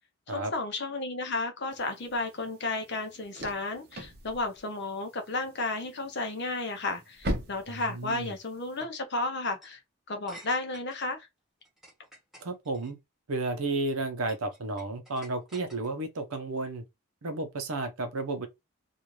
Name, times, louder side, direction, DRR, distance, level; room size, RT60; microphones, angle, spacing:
voice 1, 0.3-9.8 10.1-11.3, left 2 dB, 50° left, 0.6 m, -33 dB
sound 1, 1.7-8.8, equal, 45° right, 0.7 m, -41 dB
voice 2, 7.7-8.3 12.4-13.0 13.3-16.8 17.2-18.5, right 2 dB, 80° right, 0.7 m, -32 dB
sound 2, 7.8-8.0 8.8-9.0 9.5-9.8 10.3-11.0 11.6-12.9 13.6-13.9 14.3-16.1, right 1 dB, ahead, 1.1 m, -51 dB
2.5 x 2.4 x 3.1 m
head